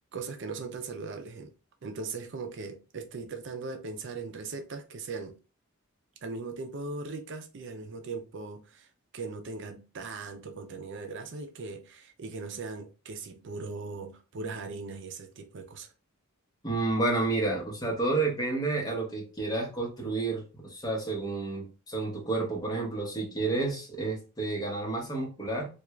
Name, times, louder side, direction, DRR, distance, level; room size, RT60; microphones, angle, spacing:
voice 1, 0.1-1.5 1.8-5.4 6.2-8.9 9.1-15.9, right 4 dB, 55° right, 0.5 m, -39 dB
voice 2, 16.6-25.7, right 3 dB, 20° left, 1.0 m, -30 dB
3.4 x 2.4 x 3.0 m
head